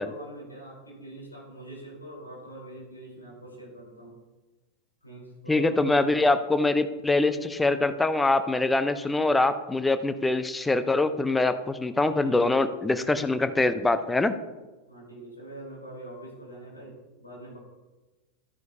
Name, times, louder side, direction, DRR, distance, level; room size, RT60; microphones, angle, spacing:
voice 1, 0.0-4.2 5.0-6.2 12.2-12.9 14.9-17.6, right 1 dB, 80° left, -4 dB, 3.6 m, -44 dB
voice 2, 5.5-14.3, left 2 dB, 10° left, 11 dB, 0.6 m, -24 dB
12.5 x 9.2 x 2.7 m, 1.2 s
figure-of-eight pair, 90°, 0 cm